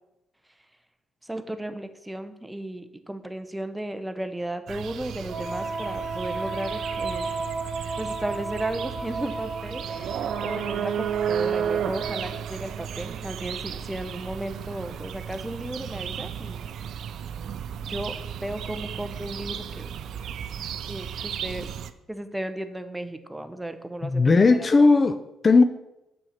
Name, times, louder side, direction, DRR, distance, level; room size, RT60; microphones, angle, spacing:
voice 1, 1.2-7.3 8.0-16.7 17.9-19.9 20.9-21.7 22.1-24.3 24.6-24.7, right 1 dB, 10° right, 9 dB, 0.7 m, -35 dB
sound 1, 4.7-21.9, right 8 dB, 70° right, 0.4 m, -33 dB
Wind instrument woodwind instrument, 5.3-12.6, right 3 dB, 25° right, 2.1 m, -34 dB
voice 2, 24.0-25.6, left 3 dB, 35° left, 10 dB, 0.4 m, -18 dB
6.3 x 4.3 x 6.4 m, 0.92 s
cardioid pair, 90°, 0 cm